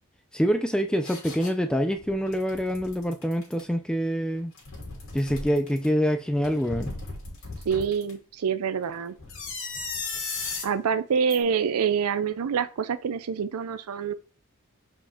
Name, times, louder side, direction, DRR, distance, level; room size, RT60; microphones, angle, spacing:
voice 1, 0.3-4.5 5.1-6.9, equal, 5° left, 0.4 m, -26 dB
sound 1, 1.0-1.5 2.0-3.6 4.4-5.9 6.4-8.1 9.2-10.7 11.3-11.4, left 3 dB, 65° left, 3.0 m, -36 dB
voice 2, 7.7-9.1 10.6-14.1, right 6 dB, 85° right, 0.5 m, -26 dB
5.1 x 5.1 x 3.6 m
head